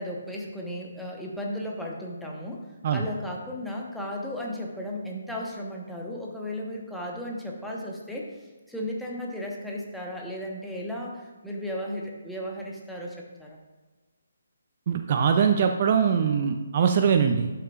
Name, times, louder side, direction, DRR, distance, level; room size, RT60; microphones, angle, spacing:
voice 1, 0.0-2.6 2.9-8.3 8.7-13.6, left 1 dB, ahead, -3 dB, 1.0 m, -35 dB
voice 2, 14.9-17.5, right 7 dB, 40° right, 6 dB, 0.5 m, -22 dB
11.5 x 5.8 x 2.5 m, 1.3 s
figure-of-eight pair, 140°, 0 cm